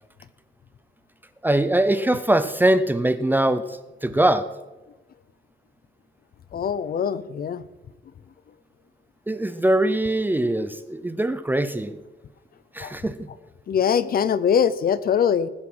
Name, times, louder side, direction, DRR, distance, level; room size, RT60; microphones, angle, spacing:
voice 1, 1.4-4.5 9.3-12.0 12.7-13.3, right 1 dB, 10° right, 11 dB, 0.5 m, -22 dB
voice 2, 6.5-7.6 12.8-12.9 13.7-15.5, left 8 dB, 50° left, 16 dB, 0.6 m, -22 dB
19.5 x 7.3 x 6.1 m, 1.1 s
wide cardioid pair, 175°, 20 cm